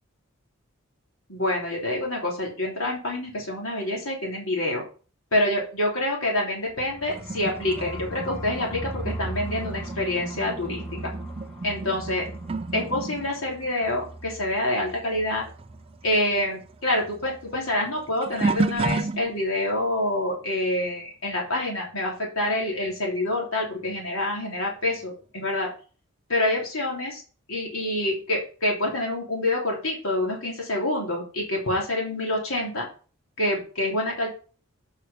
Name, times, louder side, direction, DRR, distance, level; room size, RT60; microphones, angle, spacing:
voice 1, 1.3-4.9 5.3-11.1 11.6-12.3 12.7-15.5 16.0-25.7 26.3-27.2 27.5-32.9 33.4-34.3, left 1 dB, 85° left, -2 dB, 3.5 m, -27 dB
sound 1, 6.7-16.4 16.7-16.8 17.1-17.6, right 1 dB, 5° left, 1.7 m, -39 dB
sound 2, 7.1-15.1 15.4-19.7 20.3-20.6 22.9-23.0 23.9-24.0, right 3 dB, 25° right, 0.4 m, -33 dB
8.1 x 5.7 x 5.1 m, 0.38 s
head